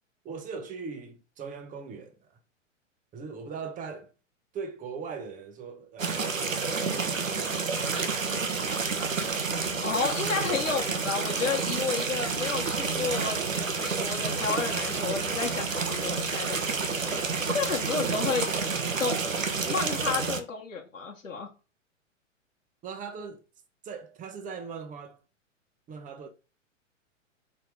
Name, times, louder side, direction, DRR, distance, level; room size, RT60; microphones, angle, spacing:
voice 1, 0.2-2.3 3.1-4.1 4.5-7.6 7.9-9.0 18.0-18.3 22.8-23.4 23.8-25.2 25.9-26.3, right 5 dB, 20° right, 1.0 m, -40 dB
sound 1, 6.0-20.4, right 4 dB, 85° right, 1.1 m, -29 dB
voice 2, 9.8-13.4 13.8-16.6 17.0-17.1 17.5-18.5 19.0-19.2 19.6-21.5, left 5 dB, 85° left, 1.5 m, -31 dB
4.5 x 4.4 x 4.7 m
figure-of-eight pair, 110°, 39 cm